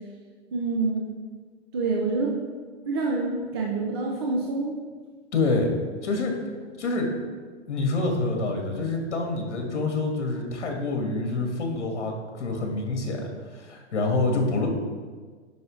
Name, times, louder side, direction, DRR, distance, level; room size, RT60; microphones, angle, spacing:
voice 1, 0.5-1.1 1.7-2.3 2.9-4.8, right 3 dB, 25° right, -1 dB, 0.5 m, -27 dB
voice 2, 5.3-5.7 6.0-6.3 6.8-7.1 7.7-13.3 13.5-14.7, left 3 dB, 75° left, 2 dB, 1.7 m, -26 dB
9.3 x 5.4 x 3.2 m, 1.5 s
hypercardioid pair, 160°, 35 cm